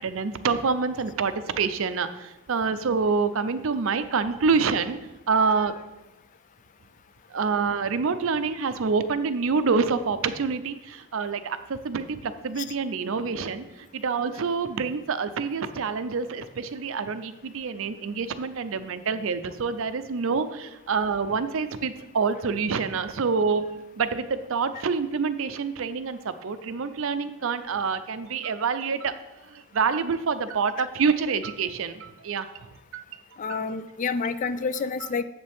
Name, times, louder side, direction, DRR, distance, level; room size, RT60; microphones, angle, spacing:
voice 1, 0.0-5.0 5.3-5.7 7.3-13.6 13.9-23.6 24.0-29.1 29.5-32.7 32.9-33.0 33.5-33.6, right 5 dB, 60° right, 12 dB, 0.5 m, -27 dB
voice 2, 33.4-35.2, left 5 dB, 35° left, 13 dB, 0.3 m, -29 dB
7.9 x 7.6 x 3.5 m, 0.98 s
head